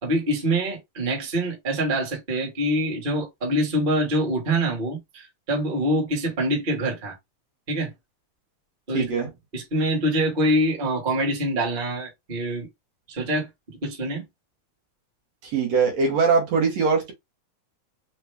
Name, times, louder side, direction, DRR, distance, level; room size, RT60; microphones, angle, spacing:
voice 1, 0.0-7.1 7.7-7.9 8.9-9.1 9.5-12.7 13.1-13.5 13.8-14.2, right 1 dB, 30° right, 0.9 m, -25 dB
voice 2, 8.9-9.3 15.4-17.1, right 5 dB, 65° right, 1.9 m, -21 dB
5.1 x 2.1 x 3.4 m
omnidirectional pair, 3.6 m